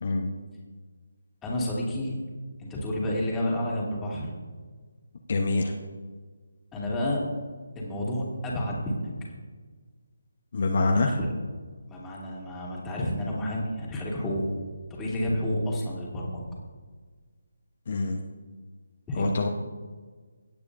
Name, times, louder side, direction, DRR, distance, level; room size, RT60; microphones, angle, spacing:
voice 1, 0.0-0.3 5.3-5.7 10.5-11.1 17.9-18.2 19.2-19.5, left 3 dB, 50° left, 2 dB, 0.9 m, -25 dB
voice 2, 1.4-2.2 2.6-4.3 6.7-7.2 7.7-9.1 10.9-11.3 11.9-14.5 14.9-16.6 19.1-19.5, left 1 dB, 10° left, -5 dB, 2.3 m, -30 dB
17.0 x 8.4 x 2.6 m, 1.5 s
figure-of-eight pair, 155°, 0 cm